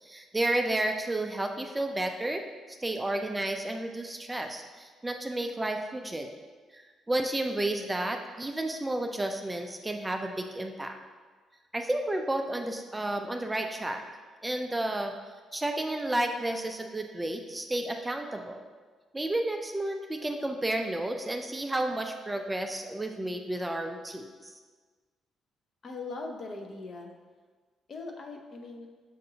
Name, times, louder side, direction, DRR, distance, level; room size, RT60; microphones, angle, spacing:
voice 1, 0.0-6.3 6.7-11.0 11.7-14.0 14.4-15.1 15.5-18.6 19.1-24.5, right 1 dB, 15° right, 4 dB, 0.3 m, -32 dB
voice 2, 25.8-27.1 27.9-28.9, left 3 dB, 50° left, 2 dB, 0.6 m, -40 dB
6.4 x 2.6 x 2.7 m, 1.4 s
cardioid pair, 90°, 0 cm